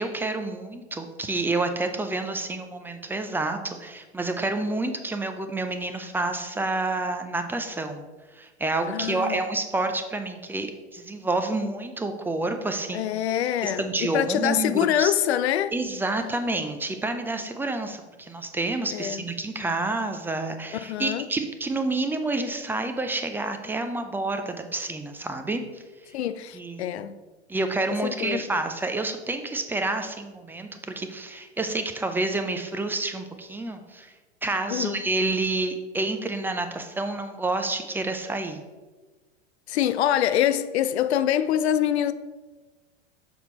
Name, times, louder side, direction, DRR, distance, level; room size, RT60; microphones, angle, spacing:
voice 1, 0.0-8.0 8.4-13.1 13.8-15.1 15.7-25.6 26.5-27.0 27.5-34.1 34.4-38.6, right 2 dB, 5° right, 0.3 m, -29 dB
voice 2, 8.9-9.4 12.9-15.8 18.9-19.3 20.7-21.3 26.1-27.2 27.9-28.5 34.7-35.1 39.7-42.1, left 11 dB, 70° left, 0.5 m, -25 dB
6.7 x 4.3 x 4.2 m
hypercardioid pair, 90°, 34 cm